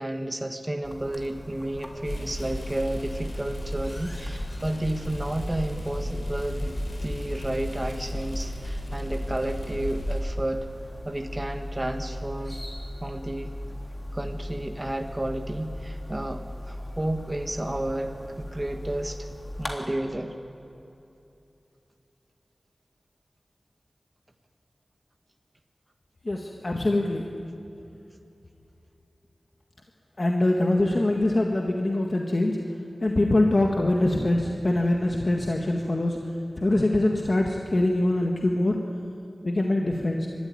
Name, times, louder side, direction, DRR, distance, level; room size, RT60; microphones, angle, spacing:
voice 1, 0.0-6.7 7.0-10.7 11.0-12.6 13.0-13.5 14.1-19.3 19.6-20.3, right 1 dB, 25° right, 5 dB, 1.4 m, -31 dB
sound 1, 0.8-19.7, left 1 dB, 30° left, 3.3 m, -38 dB
sound 2, 2.0-10.2, equal, 85° left, 4.2 m, -34 dB
voice 2, 26.2-27.2 30.2-32.6 33.0-36.2 36.6-38.8 39.4-40.3, left 1 dB, 45° left, 1 dB, 1.7 m, -23 dB
24.0 x 13.0 x 9.7 m, 2.8 s
wide cardioid pair, 50°, 0 cm